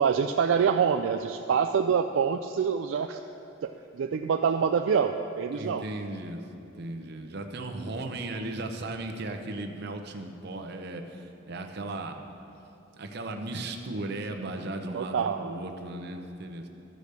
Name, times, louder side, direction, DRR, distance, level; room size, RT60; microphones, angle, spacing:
voice 1, 0.0-3.2 3.6-5.9 14.9-15.5, right 6 dB, 75° right, 6 dB, 0.3 m, -26 dB
voice 2, 5.5-6.4 6.8-12.2 13.0-16.7, right 2 dB, 55° right, 4 dB, 0.8 m, -36 dB
13.0 x 5.1 x 6.6 m, 2.8 s
head